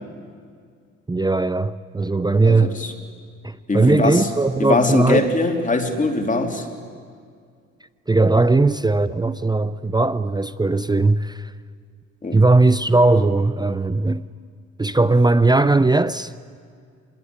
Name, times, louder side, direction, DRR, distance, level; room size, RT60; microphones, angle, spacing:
voice 1, 1.1-2.7 3.4-5.3 8.1-11.5 12.3-14.3 14.8-16.3, right 3 dB, 15° right, 0.6 m, -18 dB
voice 2, 2.4-2.9 3.7-4.3 4.6-6.7 12.2-12.4, left 2 dB, 25° left, 3.3 m, -21 dB
25.5 x 21.5 x 9.8 m
cardioid pair, 90°, 30 cm